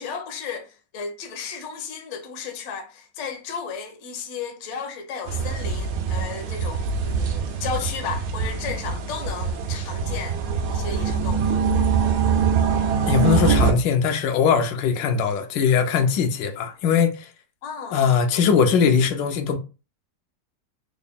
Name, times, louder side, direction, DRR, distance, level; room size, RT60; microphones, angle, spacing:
voice 1, 0.0-10.4 10.7-11.5 17.6-18.4, left 6 dB, 60° left, 0.8 m, -34 dB
sound 1, 5.3-13.7, right 6 dB, 75° right, 1.3 m, -23 dB
voice 2, 13.1-17.3 17.9-19.6, left 6 dB, 80° left, 1.2 m, -20 dB
3.8 x 2.1 x 3.5 m
omnidirectional pair, 2.0 m